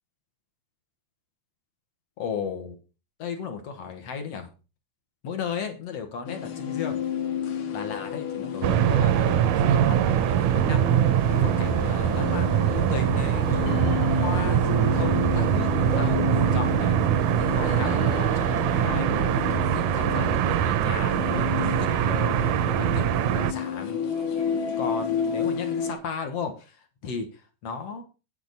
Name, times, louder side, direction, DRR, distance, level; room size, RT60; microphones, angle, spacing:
voice 1, 2.2-2.8 3.2-4.5 5.2-7.0 7.7-10.9 11.4-16.9 17.5-22.4 22.8-23.0 23.5-24.0 24.5-26.7 27.0-27.3 27.6-28.0, left 6 dB, 55° left, 6 dB, 2.2 m, -35 dB
sound 1, 6.3-25.9, left 7 dB, 85° left, 3.4 m, -31 dB
sound 2, 8.6-23.5, right 11 dB, 80° right, 1.8 m, -23 dB
sound 3, 13.2-19.7, left 4 dB, 20° right, 0.8 m, -42 dB
8.9 x 8.8 x 4.1 m, 0.32 s
omnidirectional pair, 3.8 m